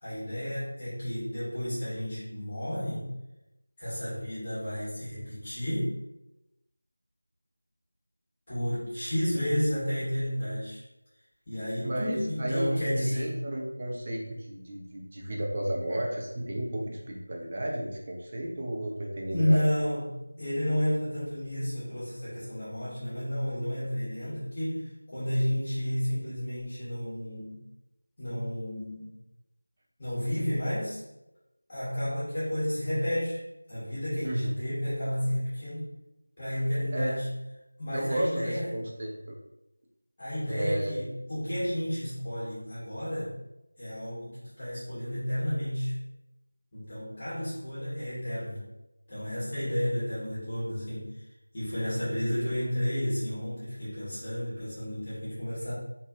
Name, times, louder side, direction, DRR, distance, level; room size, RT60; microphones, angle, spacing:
voice 1, 0.0-3.1 3.8-5.9 8.5-10.8 11.5-13.3 19.3-27.6 28.2-29.1 30.0-31.0 31.7-35.9 36.4-37.4 37.8-38.7 40.2-43.3 43.8-45.9 46.7-48.6 49.1-51.1 51.5-55.7, equal, 30° left, -12 dB, 1.0 m, -31 dB
voice 2, 11.8-19.6 34.2-34.5 36.9-37.1 37.9-39.4 40.5-41.0, right 1 dB, 30° right, -1 dB, 0.4 m, -33 dB
3.0 x 2.6 x 2.3 m, 0.93 s
figure-of-eight pair, 170°, 0 cm